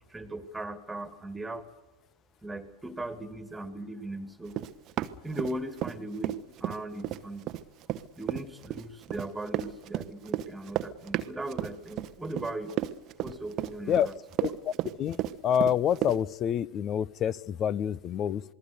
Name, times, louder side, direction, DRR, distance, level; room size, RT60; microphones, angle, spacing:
voice 1, 0.1-1.7 2.4-4.6 5.2-7.5 8.2-12.7 13.2-14.1, right 1 dB, 5° right, 10 dB, 2.4 m, -38 dB
Run, 4.5-6.0 6.2-16.2, right 13 dB, 35° right, 1.0 m, -32 dB
voice 2, 14.4-14.7 15.0-15.2 15.4-18.4, left 9 dB, 30° left, 24 dB, 0.7 m, -27 dB
27.5 x 20.5 x 6.8 m, 1.1 s
figure-of-eight pair, 90°, 0 cm